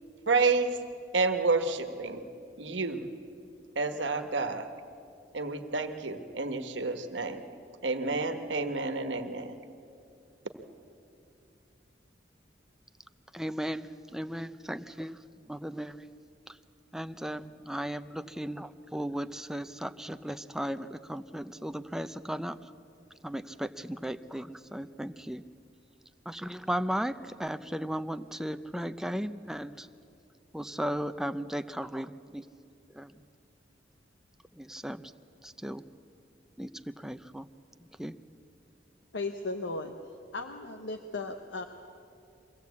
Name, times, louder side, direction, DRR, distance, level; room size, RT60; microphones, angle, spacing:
voice 1, 0.3-0.8 1.1-2.2 2.6-3.0 3.7-4.7 5.3-7.4 7.8-9.5, right 3 dB, 80° right, 8 dB, 1.3 m, -29 dB
voice 2, 13.3-15.2 15.5-16.1 16.9-22.6 23.2-25.4 26.3-29.9 30.5-32.4 32.9-33.1 34.6-35.1 35.4-35.8 36.6-37.5 38.0-38.2, equal, 5° right, 10 dB, 0.5 m, -36 dB
voice 3, 39.1-39.9 40.3-41.6, left 3 dB, 90° left, 6 dB, 0.9 m, -36 dB
23.0 x 16.5 x 8.3 m, 2.6 s
head